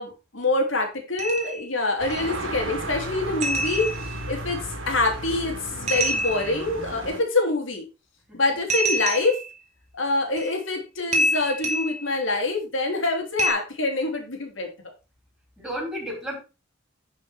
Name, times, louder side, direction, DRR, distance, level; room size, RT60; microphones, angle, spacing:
voice 1, 0.0-7.8 8.3-9.4 9.9-14.7, left 2 dB, 75° left, 3 dB, 3.3 m, -25 dB
sound 1, 1.2-1.7 2.1-2.2 3.4-4.2 5.9-6.6 8.7-9.5 10.4-10.5 11.1-12.1 13.4-13.5, right 1 dB, 35° right, 2.8 m, -26 dB
sound 2, 2.0-7.2, right 1 dB, 75° right, 3.2 m, -34 dB
voice 2, 15.6-16.3, equal, 5° right, -3 dB, 6.3 m, -33 dB
11.5 x 6.4 x 4.5 m, 0.30 s
head